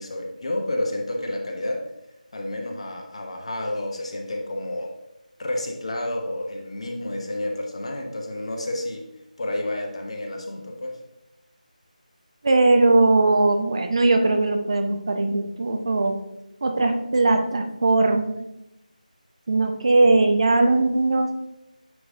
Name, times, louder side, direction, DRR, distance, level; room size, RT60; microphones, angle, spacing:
voice 1, 0.0-1.8 2.3-4.9 5.4-9.1 9.4-11.0, left 1 dB, 45° left, 2 dB, 1.0 m, -30 dB
voice 2, 12.4-16.2 16.6-18.4 19.5-21.3, right 2 dB, 40° right, 5 dB, 0.6 m, -19 dB
9.2 x 3.8 x 2.7 m, 0.88 s
figure-of-eight pair, 165°, 4 cm